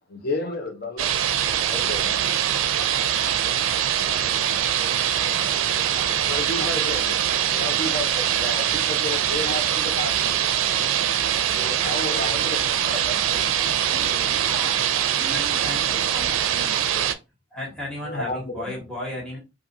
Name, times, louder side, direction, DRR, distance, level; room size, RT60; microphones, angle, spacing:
voice 1, 0.1-1.1 1.7-2.1 5.9-10.3 11.5-13.5 18.0-18.7, left 2 dB, 50° left, 0.8 m, -32 dB
sound 1, 1.0-17.1, right 10 dB, 85° right, 0.4 m, -23 dB
voice 2, 13.8-17.1, left 1 dB, 85° left, 1.2 m, -40 dB
voice 3, 15.3-15.9 17.5-19.4, left 1 dB, 5° left, 1.2 m, -33 dB
4.2 x 2.6 x 2.6 m
head